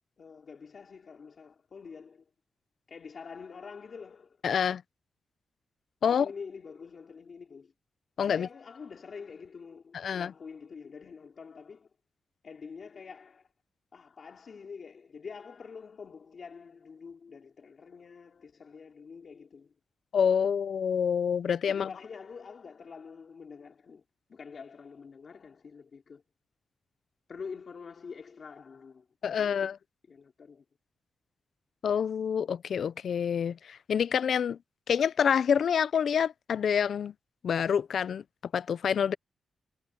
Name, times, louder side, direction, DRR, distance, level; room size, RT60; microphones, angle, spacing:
voice 1, 0.2-2.3 2.9-4.4 6.1-7.7 8.3-11.9 12.4-13.5 13.9-19.7 21.7-24.0 24.3-26.2 27.3-29.7 30.1-30.6, left 5 dB, 45° left, 3.3 m, -46 dB
voice 2, 4.4-4.8 6.0-6.3 8.2-8.5 9.9-10.3 20.1-21.9 29.2-29.8 31.8-34.6 34.9-37.1 37.4-38.2 38.5-39.1, left 7 dB, 60° left, 0.5 m, -27 dB
wide cardioid pair, 175°, 0 cm